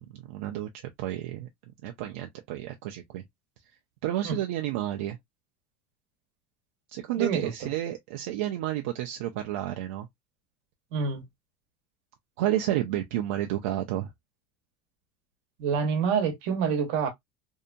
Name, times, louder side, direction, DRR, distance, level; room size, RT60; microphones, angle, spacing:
voice 1, 0.0-1.5 1.8-3.2 4.0-5.2 6.9-10.1 12.4-14.1, right 13 dB, 80° right, 0.4 m, -31 dB
voice 2, 7.2-7.5 10.9-11.2 15.6-17.1, right 6 dB, 60° right, 0.9 m, -27 dB
2.7 x 2.2 x 2.5 m
cardioid pair, 180°, 7 cm